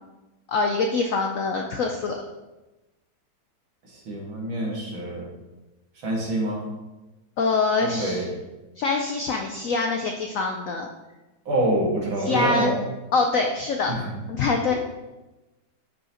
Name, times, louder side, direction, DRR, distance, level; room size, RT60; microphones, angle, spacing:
voice 1, 0.5-2.2 7.4-8.2 8.8-10.9 12.3-12.7 13.1-13.9 14.3-14.7, left 3 dB, 75° left, 3 dB, 0.7 m, -24 dB
voice 2, 3.8-5.3 6.0-6.7 7.9-8.3 11.5-12.8 13.9-14.2, right 1 dB, 85° right, -2 dB, 2.5 m, -26 dB
10.5 x 5.2 x 2.9 m, 1.1 s
omnidirectional pair, 2.1 m